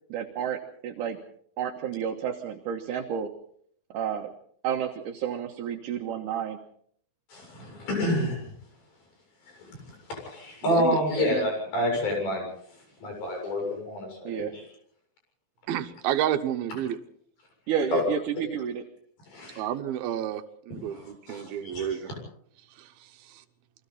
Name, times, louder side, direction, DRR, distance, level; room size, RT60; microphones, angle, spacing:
voice 1, 0.1-1.2 1.6-3.3 3.9-4.3 4.6-6.6 14.2-14.6 17.7-18.8, right 8 dB, 65° right, 2 dB, 2.7 m, -31 dB
voice 2, 7.3-8.5 9.6-12.5 13.0-14.6 17.9-18.0 19.3-19.6 20.9-21.9, left 1 dB, 75° left, 1 dB, 9.2 m, -29 dB
voice 3, 10.6-11.0 15.7-17.0 19.6-22.1 22.8-23.4, right 10 dB, 80° right, 8 dB, 3.0 m, -30 dB
29.0 x 22.5 x 4.2 m, 0.63 s
omnidirectional pair, 4.2 m